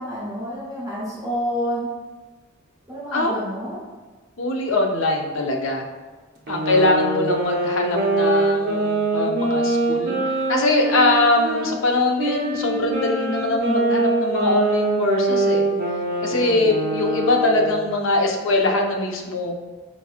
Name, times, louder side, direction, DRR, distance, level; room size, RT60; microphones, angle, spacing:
voice 1, 0.0-1.9 2.9-3.8, equal, 20° right, -10 dB, 0.7 m, -28 dB
voice 2, 4.4-5.9 6.5-10.2 10.5-15.6 16.2-19.6, left 2 dB, 80° left, 2 dB, 0.5 m, -22 dB
sound 1, 6.5-11.7 12.2-17.8, right 2 dB, 50° right, 0.5 m, -23 dB
4.5 x 2.7 x 2.3 m, 1.3 s
head